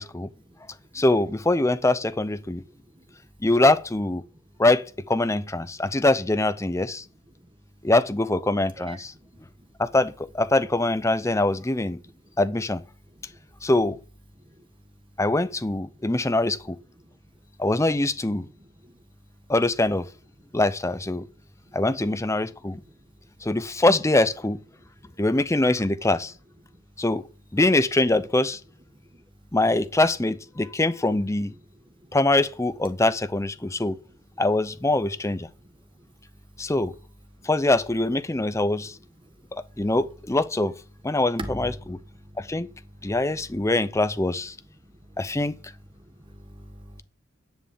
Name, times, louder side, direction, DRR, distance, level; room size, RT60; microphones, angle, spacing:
voice 1, 0.1-1.0 2.4-3.5 4.2-4.6 5.8-6.0 7.0-7.9 8.7-9.8 12.0-12.4 12.9-13.7 14.3-15.2 15.9-16.3 16.7-17.6 18.4-19.5 20.4-20.6 21.3-21.8 22.5-23.5 24.7-25.2 26.6-27.0 28.5-28.6 28.9-29.6 30.6-30.7 31.5-32.2 33.6-34.4 35.5-36.8 37.3-37.5 38.3-40.0 41.4-43.7 44.6-47.0, right 1 dB, 25° right, 1.7 m, -48 dB
voice 2, 0.9-2.6 3.4-4.2 4.6-7.0 7.8-9.1 9.8-12.0 12.4-12.8 13.6-14.0 15.2-16.8 17.6-18.5 19.5-20.1 20.5-21.2 21.7-22.8 23.4-24.6 25.2-26.3 27.0-27.2 27.5-28.6 29.5-31.5 32.1-34.0 34.4-35.5 36.6-36.9 37.4-39.0 39.5-40.7 41.0-42.0 42.4-42.7 43.0-44.5 45.2-45.5, left 2 dB, 15° left, 0.6 m, -23 dB
10.5 x 6.8 x 7.4 m
head